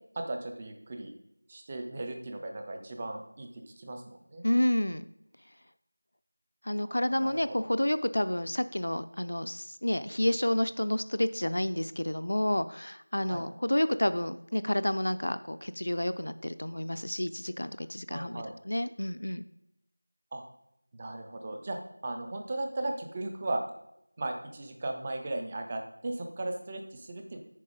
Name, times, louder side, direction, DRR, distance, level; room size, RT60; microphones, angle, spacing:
voice 1, 0.1-1.1 1.5-4.5 6.7-7.6 13.2-13.5 18.1-18.5 20.3-20.4 20.9-23.6 24.2-27.4, right 2 dB, 10° right, 5 dB, 0.4 m, -37 dB
voice 2, 4.4-5.1 6.6-19.4, left 1 dB, 50° left, 12 dB, 0.4 m, -30 dB
9.2 x 5.3 x 5.1 m, 0.82 s
figure-of-eight pair, 180°, 0 cm